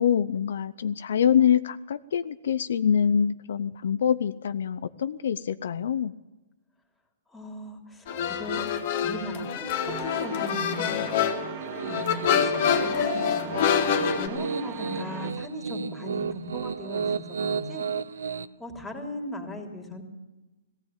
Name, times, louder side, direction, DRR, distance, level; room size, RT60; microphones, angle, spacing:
voice 1, 0.0-6.1, left 8 dB, 70° left, 13 dB, 0.8 m, -25 dB
voice 2, 7.3-8.6 9.0-11.0 11.8-13.5 13.9-17.9 18.6-20.0, equal, ahead, -1 dB, 3.2 m, -38 dB
sound 1, 8.1-14.3, left 8 dB, 45° left, 2.4 m, -26 dB
sound 2, 9.9-15.3, right 10 dB, 35° right, 1.3 m, -39 dB
Piano, 11.6-18.5, right 5 dB, 85° right, 1.0 m, -33 dB
18.5 x 16.0 x 9.2 m, 1.1 s
hypercardioid pair, 160°, 0 cm